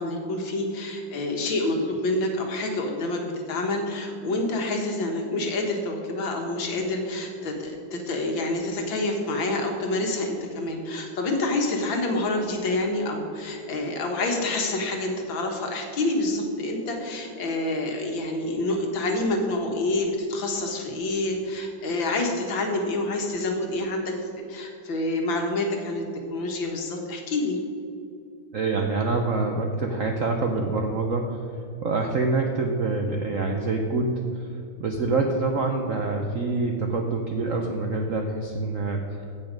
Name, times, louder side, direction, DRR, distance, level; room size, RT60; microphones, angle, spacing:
voice 1, 0.0-24.1 24.5-26.0 26.3-27.6, left 2 dB, 70° left, 2 dB, 2.1 m, -27 dB
voice 2, 28.5-31.4 31.8-34.5 34.8-39.2, right 3 dB, 65° right, 2 dB, 0.8 m, -26 dB
16.0 x 5.6 x 5.2 m, 2.6 s
omnidirectional pair, 2.3 m